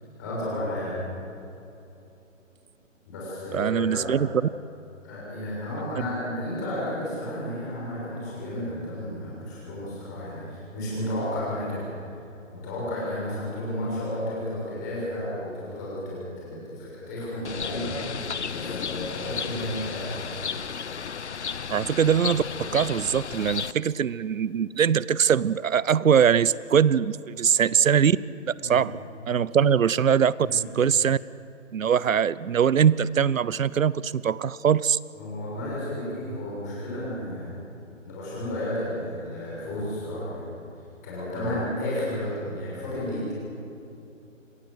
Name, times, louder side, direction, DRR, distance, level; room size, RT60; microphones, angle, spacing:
voice 1, 0.2-1.0 3.1-4.1 5.0-11.9 12.5-18.0 18.5-20.5 28.6-28.8 30.4-30.6 35.1-37.5 38.0-40.6 41.0-43.3, left 1 dB, 15° left, -7 dB, 6.6 m, -32 dB
voice 2, 3.5-4.3 21.7-28.2 28.5-29.0 29.3-31.2 31.7-35.0, right 8 dB, 90° right, 20 dB, 0.8 m, -22 dB
Bird, 17.4-23.7, left 6 dB, 60° left, 0.8 m, -33 dB
27.5 x 18.0 x 7.9 m, 2.9 s
hypercardioid pair, 180°, 39 cm